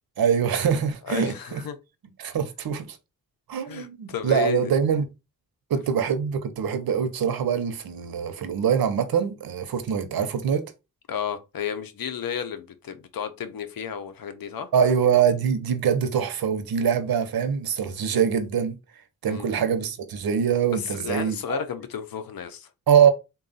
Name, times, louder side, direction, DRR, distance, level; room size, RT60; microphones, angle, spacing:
voice 1, 0.2-1.6 2.2-3.0 3.5-5.1 5.7-10.7 14.7-18.8 19.2-21.6 22.9-23.1, right 7 dB, 85° right, 0.7 m, -23 dB
voice 2, 1.0-1.8 3.7-4.7 11.1-14.7 19.3-19.5 20.7-22.7, left 8 dB, 75° left, 0.7 m, -32 dB
3.8 x 2.3 x 3.9 m
wide cardioid pair, 85°, 35 cm